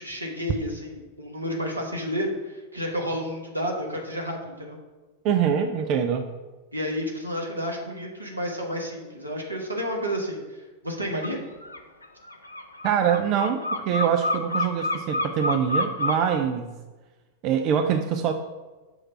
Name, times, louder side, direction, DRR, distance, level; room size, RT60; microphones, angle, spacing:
voice 1, 0.0-4.8 6.7-11.4, equal, 85° right, 0 dB, 1.2 m, -31 dB
voice 2, 5.2-6.3 12.8-16.7 17.4-18.3, right 8 dB, 40° right, 6 dB, 0.4 m, -24 dB
sound 1, 11.2-11.4 11.6-16.3, left 2 dB, 80° left, 0.5 m, -28 dB
6.1 x 3.3 x 5.7 m, 1.2 s
figure-of-eight pair, 90°, 0 cm